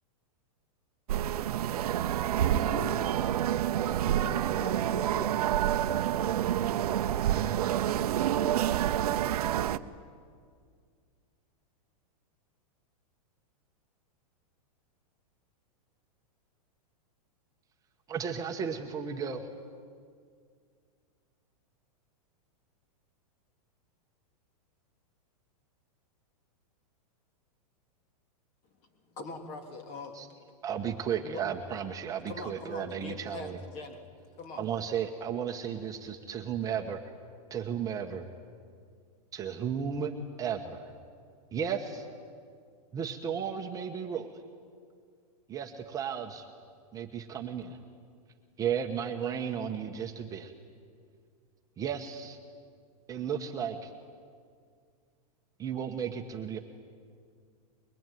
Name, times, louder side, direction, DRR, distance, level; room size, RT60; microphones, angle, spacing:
sound 1, 1.1-9.8, right 11 dB, 75° right, 0.9 m, -28 dB
voice 1, 2.2-3.3 3.8-5.5 5.8-6.5, left 3 dB, 15° left, 9 dB, 0.9 m, -44 dB
voice 2, 18.1-19.5 30.2-30.3 30.6-33.6 34.6-37.0 37.5-38.3 39.3-40.9 41.5-42.1 42.9-44.3 45.5-46.5 46.9-47.8 48.6-50.5 51.8-52.4 53.1-53.9 55.6-56.6, right 7 dB, 20° right, 3 dB, 1.3 m, -34 dB
voice 3, 28.8-30.2 31.2-31.4 32.3-34.0 34.4-34.6, left 3 dB, 35° left, 5 dB, 3.3 m, -42 dB
24.0 x 22.5 x 9.3 m, 2.1 s
supercardioid pair, 155°, 20 cm